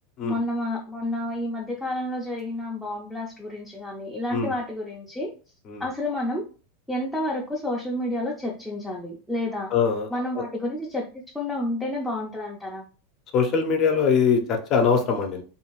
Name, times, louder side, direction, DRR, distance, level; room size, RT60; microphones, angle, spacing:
voice 1, 0.2-5.3 5.8-6.4 6.9-9.7 10.1-12.8, left 1 dB, ahead, -5 dB, 0.5 m, -30 dB
voice 2, 9.7-10.1 10.4-10.5 13.3-15.4, left 6 dB, 45° left, 4 dB, 0.7 m, -22 dB
2.6 x 2.3 x 3.0 m, 0.37 s
supercardioid pair, 115°, 0 cm